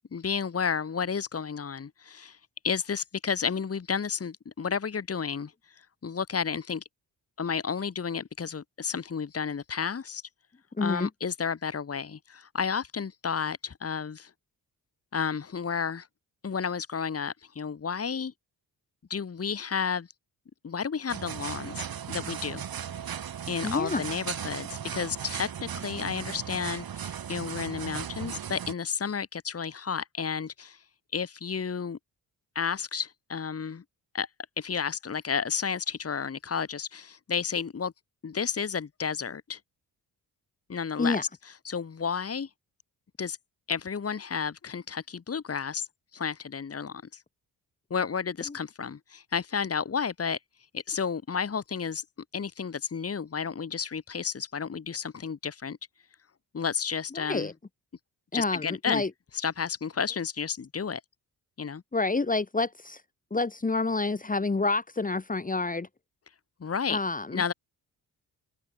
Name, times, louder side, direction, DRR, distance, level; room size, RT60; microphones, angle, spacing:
voice 1, 0.1-2.4 2.6-5.5 6.0-6.8 7.4-10.2 10.8-14.3 15.1-16.1 16.4-18.3 19.1-20.1 20.6-22.6 23.5-30.8 31.1-32.0 32.6-33.8 34.1-34.3 34.6-37.9 38.2-39.6 40.7-41.3 41.6-42.5 43.2-43.4 43.7-45.9 46.1-47.2 47.9-50.4 50.7-52.0 52.3-55.8 56.5-57.5 58.3-59.0 59.3-61.0 61.6-61.8 66.6-67.0 67.3-67.5, left 6 dB, 40° left, 2.3 m, -32 dB
voice 2, 10.8-11.1 23.6-24.0 41.0-41.2 48.5-48.6 57.1-57.5 58.3-59.1 61.9-63.0 63.3-65.9 66.9-67.4, left 3 dB, 20° left, 1.8 m, -28 dB
sound 1, 21.1-28.7, right 8 dB, 65° right, 5.4 m, -37 dB
cardioid pair, 110°, 38 cm